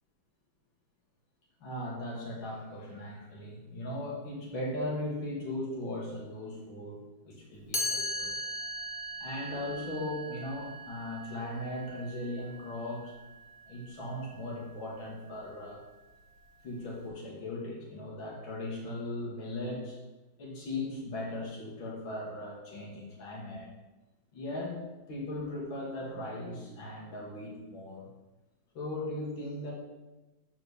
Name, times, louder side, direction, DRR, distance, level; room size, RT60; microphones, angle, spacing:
voice 1, 1.6-8.4 9.2-13.1 13.7-15.8 16.6-20.0 20.4-23.7 24.3-24.8 25.1-28.1 28.7-29.7, left 1 dB, 85° left, -2 dB, 2.7 m, -38 dB
Chime, 7.7-13.6, equal, 30° left, 1.0 m, -38 dB
6.5 x 5.5 x 6.8 m, 1.1 s
omnidirectional pair, 2.1 m